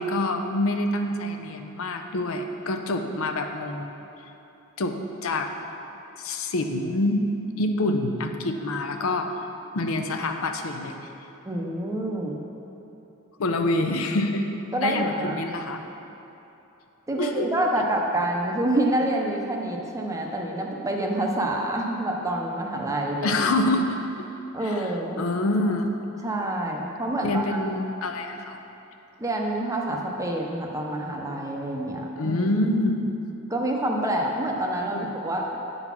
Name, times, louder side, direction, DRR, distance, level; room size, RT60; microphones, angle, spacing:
voice 1, 0.0-3.9 4.8-4.9 5.2-5.5 6.2-7.2 7.6-9.3 9.7-11.0 13.4-14.5 14.8-15.8 17.2-17.5 17.8-17.9 23.2-23.9 24.6-25.9 27.2-28.6 32.2-33.1 34.9-35.1, left 2 dB, 65° left, 5 dB, 0.5 m, -26 dB
voice 2, 11.4-12.4 14.7-15.4 17.1-23.4 24.5-25.2 26.2-27.4 29.2-32.5 33.5-35.5, right 1 dB, 15° right, 0 dB, 0.6 m, -27 dB
9.1 x 4.0 x 5.8 m, 3.0 s
head